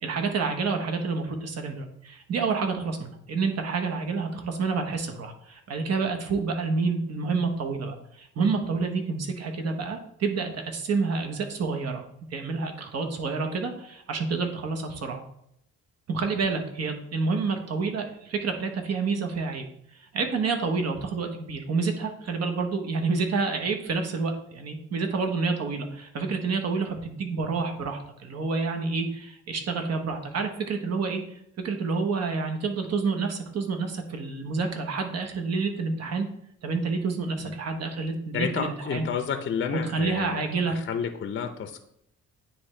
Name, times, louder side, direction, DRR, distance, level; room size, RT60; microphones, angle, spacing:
voice 1, 0.0-12.0 12.3-15.2 16.1-19.7 19.9-31.4 31.6-36.3 36.6-39.1 39.7-40.8, right 4 dB, 55° right, 4 dB, 1.1 m, -28 dB
voice 2, 38.3-41.8, left 7 dB, 40° left, 7 dB, 0.6 m, -31 dB
9.5 x 3.3 x 3.3 m, 0.74 s
cardioid pair, 90°, 30 cm